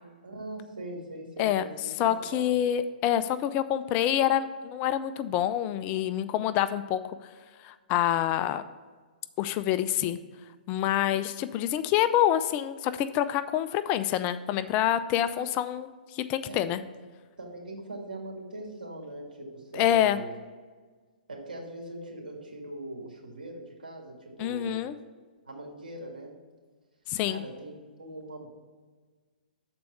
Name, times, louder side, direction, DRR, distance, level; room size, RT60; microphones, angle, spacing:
voice 1, 0.2-1.7 2.0-2.6 16.4-16.6 17.4-20.3 21.3-24.9 25.4-26.3 27.3-28.5, right 1 dB, 75° right, -1 dB, 2.0 m, -41 dB
voice 2, 2.0-7.2 7.6-8.6 9.4-10.2 10.7-16.8 19.7-20.2 24.4-25.0 27.1-27.4, left 11 dB, 30° left, 12 dB, 0.3 m, -27 dB
6.8 x 4.4 x 6.8 m, 1.4 s
figure-of-eight pair, 120°, 5 cm